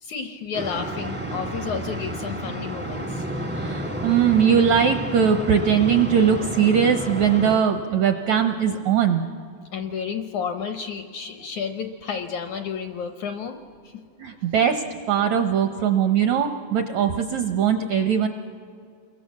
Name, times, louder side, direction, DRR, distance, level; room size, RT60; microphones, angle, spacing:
voice 1, 0.0-3.3 9.7-13.6 13.8-14.0, left 6 dB, 70° left, 7 dB, 1.8 m, -31 dB
sound 1, 0.5-7.6, right 1 dB, 15° right, 0.3 m, -31 dB
voice 2, 3.5-9.3 14.2-18.3, right 7 dB, 75° right, 7 dB, 1.6 m, -20 dB
28.5 x 22.5 x 7.3 m, 2.2 s
omnidirectional pair, 4.3 m